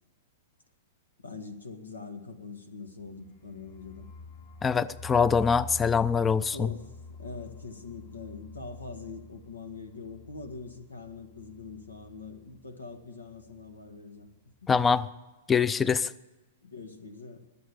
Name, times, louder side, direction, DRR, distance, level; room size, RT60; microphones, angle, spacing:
voice 1, 1.2-4.1 6.5-14.7 16.6-17.5, left 4 dB, 85° left, 8 dB, 1.8 m, -43 dB
sound 1, 2.9-12.6 12.9-13.0 13.3-13.7, left 2 dB, 55° left, 6.4 m, -47 dB
voice 2, 4.6-6.7 14.7-15.1 15.5-16.1, left 6 dB, 15° left, 20 dB, 0.5 m, -24 dB
21.5 x 8.0 x 6.9 m, 1.2 s
hypercardioid pair, 110°, 0 cm